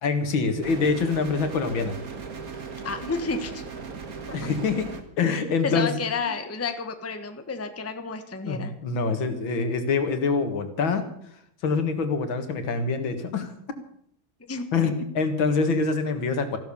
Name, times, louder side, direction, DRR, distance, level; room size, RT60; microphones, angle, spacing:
voice 1, 0.0-2.0 4.3-4.9 5.2-5.9 6.2-6.3 8.4-11.1 11.6-13.5 14.7-16.6, left 4 dB, 75° left, 8 dB, 2.5 m, -25 dB
sound 1, 0.6-5.0, right 5 dB, 45° right, 1.9 m, -37 dB
voice 2, 2.8-3.6 4.3-4.5 5.6-8.7 14.5-14.6, left 4 dB, 10° left, 8 dB, 0.9 m, -31 dB
15.0 x 12.0 x 7.1 m, 0.68 s
omnidirectional pair, 2.1 m